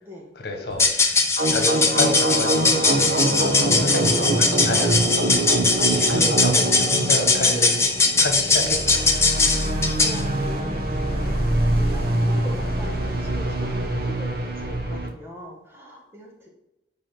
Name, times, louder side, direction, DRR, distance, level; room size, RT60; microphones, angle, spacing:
voice 1, 0.4-5.3 5.9-7.8 8.2-9.0, left 1 dB, 60° left, 3 dB, 1.6 m, -29 dB
sound 1, 0.7-10.2, left 3 dB, 15° left, 0.9 m, -21 dB
sound 2, 1.4-15.1, right 1 dB, 55° right, 1.3 m, -24 dB
voice 2, 9.9-11.4 11.7-16.5, left 1 dB, 15° right, -3 dB, 1.6 m, -40 dB
11.0 x 3.7 x 3.8 m, 0.93 s
head